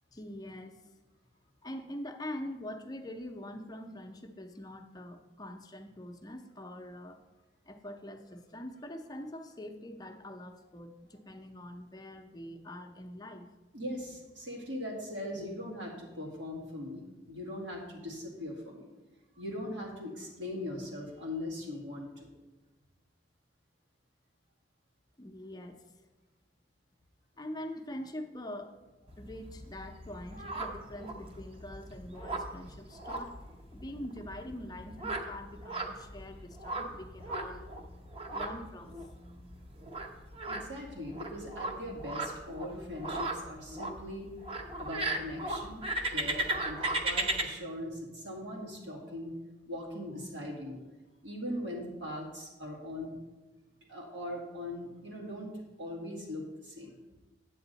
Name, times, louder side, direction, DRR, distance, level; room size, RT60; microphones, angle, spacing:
voice 1, 0.1-0.8 1.6-7.2 7.7-13.5 25.2-25.8 27.4-28.8 29.2-37.7 38.2-39.4 39.8-40.3, left 1 dB, 20° left, 5 dB, 0.6 m, -44 dB
voice 2, 13.7-18.9 19.4-22.3 40.4-44.3 44.8-49.3 49.7-50.8 51.2-53.2 53.9-55.5 55.8-56.9, left 1 dB, 90° right, -2 dB, 2.3 m, -40 dB
sound 1, 29.1-47.4, right 2 dB, 30° right, 0.8 m, -37 dB
8.9 x 7.8 x 4.0 m, 1.1 s
head